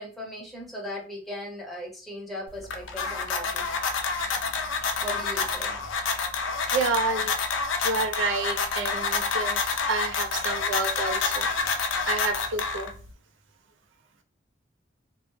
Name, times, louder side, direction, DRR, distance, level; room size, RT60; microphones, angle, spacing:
voice 1, 0.0-3.8 5.0-5.8, left 1 dB, ahead, -5 dB, 0.7 m, -38 dB
sound 1, 2.5-13.1, left 4 dB, 75° left, 0.4 m, -28 dB
voice 2, 6.7-7.6 7.8-13.0, right 3 dB, 75° right, 6 dB, 0.4 m, -30 dB
2.1 x 2.0 x 3.0 m, 0.38 s
head